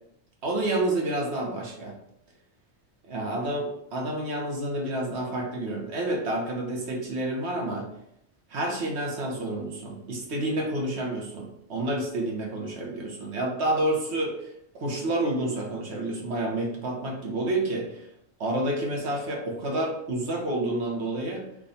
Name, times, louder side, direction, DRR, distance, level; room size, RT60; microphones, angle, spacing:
voice 1, 0.4-1.9 3.1-7.8 8.5-14.5 14.7-18.0 18.4-21.4, right 1 dB, 60° right, -1 dB, 1.1 m, -29 dB
3.5 x 2.3 x 4.0 m, 0.77 s
omnidirectional pair, 1.4 m